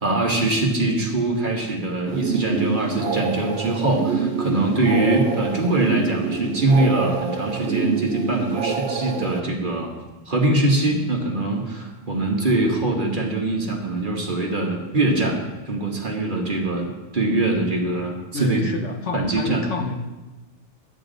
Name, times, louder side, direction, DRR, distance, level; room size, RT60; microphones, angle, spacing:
voice 1, 0.0-9.9 10.3-15.4 15.7-18.6 19.1-19.6, right 2 dB, 40° right, 0 dB, 1.6 m, -23 dB
sound 1, 2.0-9.4, right 5 dB, 65° right, 1.1 m, -26 dB
voice 2, 18.3-19.9, left 3 dB, 65° left, 3 dB, 1.3 m, -29 dB
12.5 x 9.2 x 4.0 m, 1.1 s
omnidirectional pair, 1.3 m